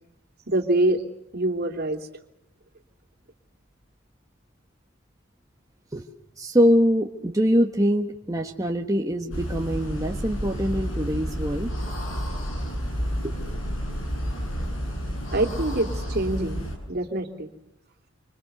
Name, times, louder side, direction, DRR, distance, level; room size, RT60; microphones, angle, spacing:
voice 1, 0.5-1.0 1.3-2.1 15.3-16.6 16.9-17.5, right 1 dB, 50° right, 4 dB, 3.0 m, -25 dB
voice 2, 6.4-11.7 13.2-13.4, equal, 15° right, 1 dB, 1.6 m, -23 dB
sound 1, 9.3-16.8, equal, 80° left, 7.9 m, -30 dB
27.5 x 26.5 x 6.8 m, 0.81 s
head